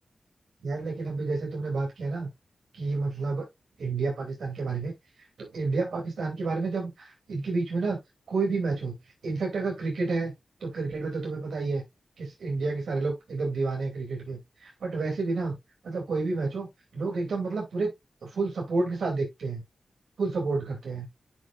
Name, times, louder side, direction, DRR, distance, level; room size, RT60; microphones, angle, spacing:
voice 1, 0.6-2.3 2.7-3.5 3.8-4.9 5.4-8.0 8.3-8.9 9.2-10.3 10.6-11.8 12.2-15.5 15.8-16.7 16.9-17.9 18.2-19.6 20.2-21.1, right 3 dB, 85° right, 2.8 m, -30 dB
9.1 x 5.8 x 2.5 m
cardioid pair, 60°, 0 cm